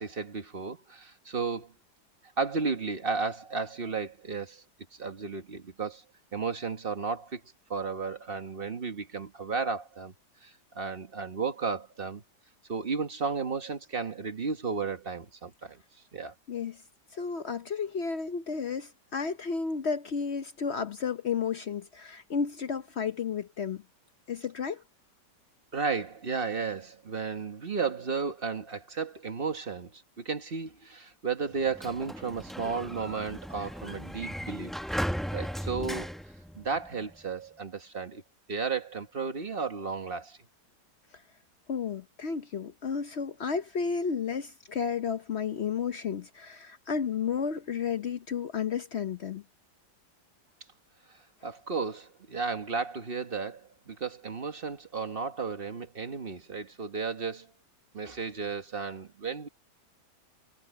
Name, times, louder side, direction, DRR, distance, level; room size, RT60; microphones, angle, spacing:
voice 1, 0.0-1.7 2.4-4.6 4.9-6.0 6.3-7.4 7.7-10.1 10.4-12.2 12.7-15.8 16.1-16.3 25.7-34.7 35.3-36.2 36.5-38.2 38.5-40.4 51.1-57.5 57.9-59.5, right 5 dB, 35° right, 1.4 m, -33 dB
voice 2, 16.5-16.8 17.1-23.8 24.3-24.8 41.7-49.4, left 6 dB, 50° left, 0.8 m, -32 dB
Sliding door, 31.5-37.1, equal, ahead, 0.4 m, -37 dB
omnidirectional pair, 1.9 m